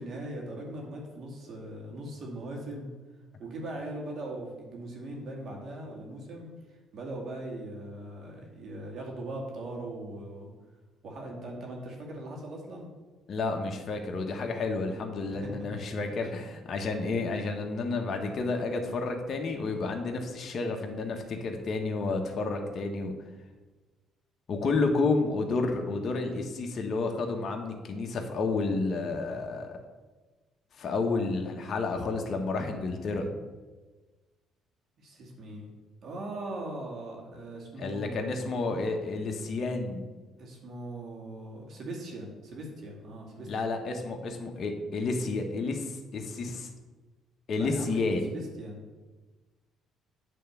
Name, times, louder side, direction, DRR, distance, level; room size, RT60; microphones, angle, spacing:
voice 1, 0.0-2.9 3.4-10.5 11.0-12.9 15.3-15.6 15.9-16.0 35.0-35.7 36.0-38.5 40.4-43.5 47.6-49.0, right 1 dB, 60° right, -1 dB, 2.2 m, -40 dB
voice 2, 13.3-23.1 24.5-29.8 30.8-33.3 37.8-40.1 43.5-46.7 47.5-48.3, left 3 dB, 50° left, 2 dB, 1.1 m, -30 dB
9.0 x 3.5 x 6.8 m, 1.3 s
cardioid pair, 105°, 0 cm